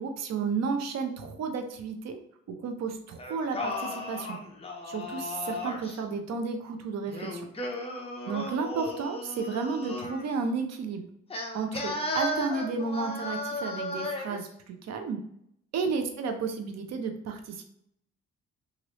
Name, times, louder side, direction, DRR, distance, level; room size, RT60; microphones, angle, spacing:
voice 1, 0.0-2.2 2.5-4.4 4.8-7.4 8.3-11.1 11.5-15.2 15.7-17.6, right 5 dB, 60° right, 5 dB, 0.6 m, -32 dB
Singing, 3.2-6.0 7.1-10.3 11.3-14.4, left 1 dB, 20° left, 0.6 m, -35 dB
3.1 x 2.5 x 3.0 m, 0.72 s
cardioid pair, 90°, 30 cm